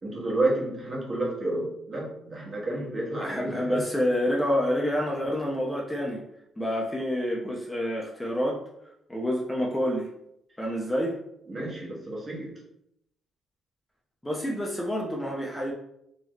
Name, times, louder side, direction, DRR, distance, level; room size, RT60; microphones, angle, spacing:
voice 1, 0.0-3.8 11.5-12.6, right 2 dB, 35° right, -2 dB, 1.2 m, -30 dB
voice 2, 3.2-6.2 6.6-8.6 9.1-10.1 10.6-11.2 14.2-15.7, equal, 10° left, -2 dB, 0.7 m, -28 dB
4.0 x 2.9 x 3.0 m, 0.76 s
cardioid pair, 90°, 0 cm